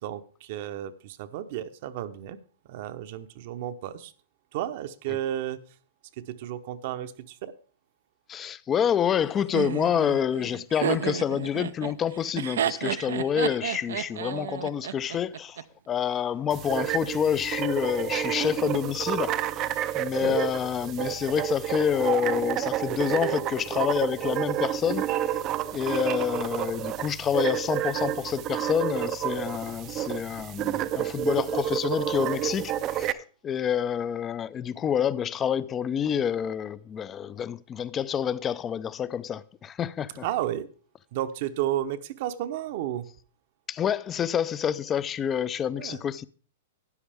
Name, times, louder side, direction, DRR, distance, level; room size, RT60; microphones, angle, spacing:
voice 1, 0.0-2.4 2.7-4.1 4.5-5.6 6.2-7.5 20.2-20.4 40.2-40.7 41.1-43.1 45.7-46.0, right 12 dB, 55° right, 0.8 m, -32 dB
voice 2, 8.3-19.7 19.9-33.2 33.4-40.2 43.7-46.2, left 8 dB, 20° left, 0.4 m, -28 dB
Laughter, 9.5-15.6, right 9 dB, 80° right, 0.5 m, -31 dB
sound 1, 16.5-33.1, right 12 dB, 30° right, 0.5 m, -30 dB
13.0 x 9.7 x 3.5 m
hypercardioid pair, 140°, 0 cm